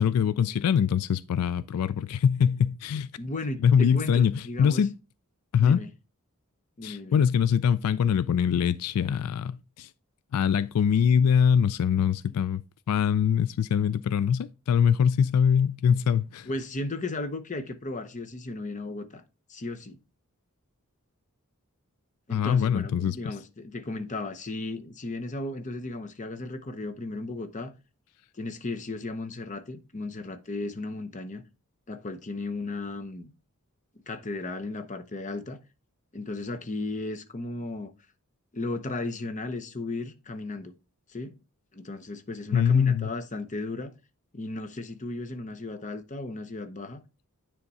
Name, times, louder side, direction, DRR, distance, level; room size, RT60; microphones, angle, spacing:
voice 1, 0.0-3.1 3.6-5.0 5.5-5.8 6.8-9.9 10.3-16.5 22.3-23.3 42.5-43.1, left 7 dB, 80° left, 0.3 m, -23 dB
voice 2, 3.2-4.8 5.6-5.9 6.8-7.2 16.5-19.2 19.5-20.0 22.3-27.7 28.4-31.4 31.9-33.3 34.1-35.6 36.1-37.9 38.5-40.7 41.1-41.3 41.7-43.9 44.3-47.0, left 2 dB, 35° left, 0.8 m, -35 dB
9.7 x 3.6 x 4.1 m
head